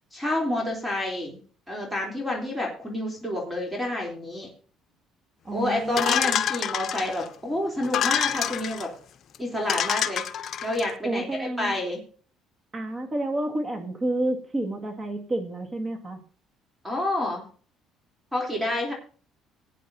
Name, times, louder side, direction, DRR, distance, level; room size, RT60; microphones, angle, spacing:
voice 1, 0.1-1.4 1.7-4.5 5.5-8.9 9.4-10.2 10.6-12.0 16.8-17.4 18.3-18.9, left 1 dB, 5° right, -1 dB, 3.6 m, -28 dB
voice 2, 5.4-6.3 11.0-11.8 12.7-16.2, right 1 dB, 25° right, 3 dB, 2.2 m, -30 dB
sound 1, 6.0-7.3 7.8-8.9 9.3-9.4 9.7-10.9, left 9 dB, 50° left, 1.0 m, -27 dB
19.0 x 9.3 x 2.8 m, 0.42 s
cardioid pair, 105°, 0 cm